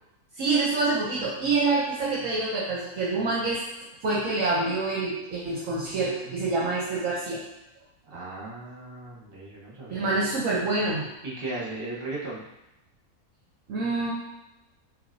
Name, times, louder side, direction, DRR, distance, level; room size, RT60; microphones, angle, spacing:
voice 1, 0.4-3.6 4.0-7.5 9.9-11.1 13.7-14.1, right 3 dB, 60° right, -5 dB, 1.1 m, -26 dB
voice 2, 8.1-10.1 11.2-12.5, right 2 dB, 40° right, -5 dB, 1.5 m, -36 dB
5.9 x 3.3 x 2.7 m, 0.94 s
omnidirectional pair, 1.6 m